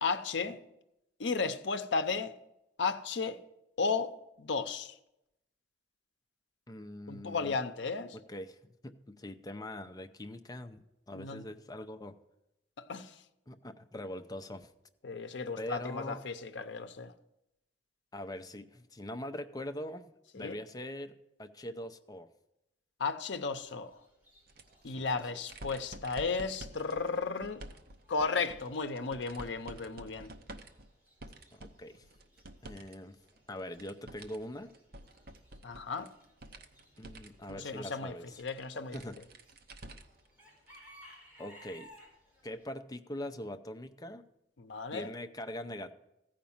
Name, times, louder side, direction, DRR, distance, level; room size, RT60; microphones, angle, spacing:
voice 1, 0.0-0.6 1.2-2.3 2.8-3.4 3.8-4.9 7.1-8.2 11.1-11.4 12.8-13.1 15.0-17.1 20.3-20.6 23.0-24.0 24.8-27.6 28.1-30.3 35.6-36.1 37.5-39.0 44.6-45.1, left 4 dB, 75° left, 0.7 m, -34 dB
voice 2, 6.7-7.6 8.1-12.2 13.5-14.7 15.6-16.2 18.1-22.3 24.9-25.1 31.5-32.0 32.6-33.2 33.5-34.7 37.0-38.4 38.9-39.2 41.4-41.9 42.4-44.2 44.9-45.9, left 1 dB, 20° left, 0.6 m, -42 dB
Chicken rooster / Bird, 23.5-42.6, equal, 10° right, 4.5 m, -62 dB
sound 1, 24.5-33.0 33.3-40.3 40.7-40.8 42.0-42.1, right 1 dB, 55° right, 0.8 m, -50 dB
15.0 x 5.1 x 7.2 m
head